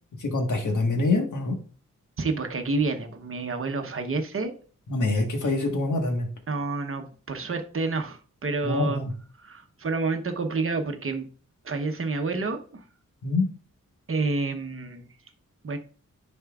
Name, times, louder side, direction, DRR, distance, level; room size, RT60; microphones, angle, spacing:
voice 1, 0.2-1.5 4.9-6.3 8.6-9.1 13.2-13.5, left 2 dB, 75° left, 3 dB, 1.5 m, -25 dB
voice 2, 2.2-4.5 6.5-9.0 9.4-11.3 11.6-12.8 14.1-15.1 15.6-15.8, right 3 dB, 45° right, 5 dB, 0.9 m, -29 dB
10.0 x 4.3 x 2.4 m, 0.41 s
wide cardioid pair, 145°, 31 cm